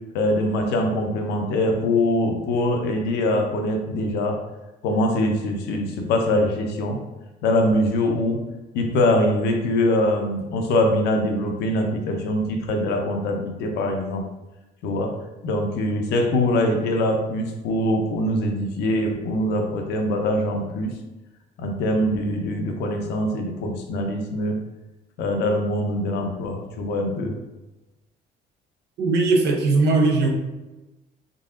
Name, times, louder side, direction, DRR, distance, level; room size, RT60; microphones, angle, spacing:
voice 1, 0.1-4.4 4.8-7.0 7.4-8.4 8.7-14.3 14.8-15.2 15.4-20.9 21.6-24.6 25.2-27.4, left 1 dB, 85° left, 3 dB, 0.7 m, -23 dB
voice 2, 29.0-30.3, right 3 dB, 75° right, 2 dB, 0.8 m, -19 dB
3.9 x 3.6 x 2.4 m, 1.1 s
cardioid pair, 110°, 17 cm